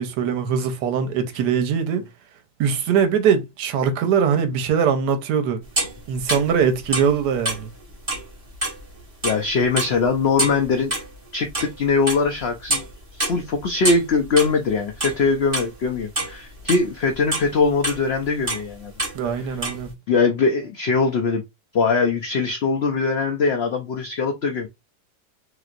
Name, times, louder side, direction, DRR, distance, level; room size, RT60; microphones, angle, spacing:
voice 1, 0.0-2.0 2.6-5.6 6.1-7.7 19.1-19.9, right 7 dB, 85° right, 1.2 m, -21 dB
sound 1, 5.8-9.4 9.8-11.1 11.5-12.4 12.7-12.9 13.2-15.7 16.0-16.9 17.3-18.0 18.5-18.7 19.0-19.2 19.5-19.8, right 1 dB, 25° right, 1.1 m, -26 dB
voice 2, 9.2-10.9 11.3-12.8 13.1-18.9 19.4-19.6 20.1-21.4 21.7-24.7, left 4 dB, 80° left, 0.5 m, -21 dB
3.2 x 3.0 x 2.4 m
omnidirectional pair, 1.7 m